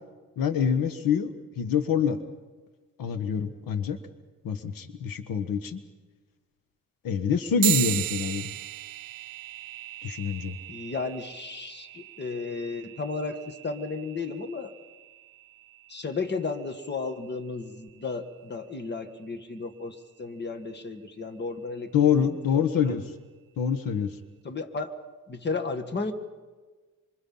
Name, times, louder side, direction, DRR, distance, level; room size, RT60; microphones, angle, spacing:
voice 1, 0.4-2.2 3.0-4.0 4.4-5.8 7.0-8.5 10.0-10.6 21.9-23.0 23.6-24.2, left 7 dB, 80° left, 10 dB, 1.4 m, -26 dB
sound 1, 7.6-17.4, right 15 dB, 80° right, 0.6 m, -36 dB
voice 2, 10.7-14.7 15.9-23.0 24.4-24.9 25.3-26.1, left 4 dB, 30° left, 8 dB, 1.7 m, -34 dB
26.5 x 26.0 x 5.6 m, 1.3 s
cardioid pair, 125°, 34 cm